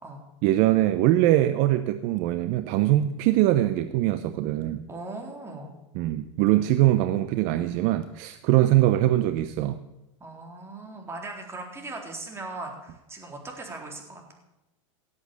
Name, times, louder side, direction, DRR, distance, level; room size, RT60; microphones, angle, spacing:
voice 1, 0.4-4.9 5.9-9.8, right 14 dB, 50° right, 11 dB, 0.8 m, -22 dB
voice 2, 4.9-5.7 10.2-14.3, right 2 dB, 15° right, 1 dB, 3.9 m, -39 dB
18.0 x 8.0 x 8.5 m, 0.97 s
hypercardioid pair, 120°, 16 cm